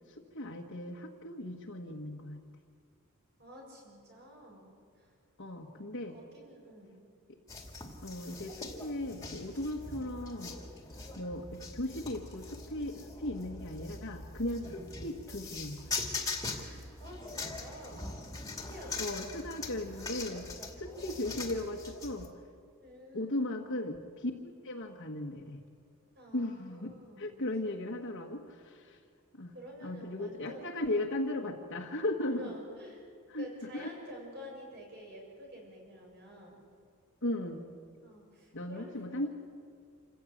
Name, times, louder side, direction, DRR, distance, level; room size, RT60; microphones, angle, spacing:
voice 1, 0.1-2.4 5.4-6.2 8.0-10.5 11.1-15.9 19.0-20.5 20.8-22.3 23.1-25.6 26.3-29.0 29.3-29.5 29.8-32.4 33.3-33.4 33.7-33.9 37.2-37.7 38.5-39.3, left 1 dB, 60° left, -2 dB, 1.6 m, -37 dB
voice 2, 3.4-5.1 5.7-7.0 16.5-18.1 18.5-19.7 22.8-23.7 26.1-27.3 29.5-30.7 32.3-33.0 33.3-36.6 38.0-39.3, equal, 50° right, -1 dB, 6.8 m, -50 dB
sound 1, 7.5-22.3, left 3 dB, 15° left, 2.3 m, -42 dB
27.5 x 15.5 x 8.6 m, 2.2 s
head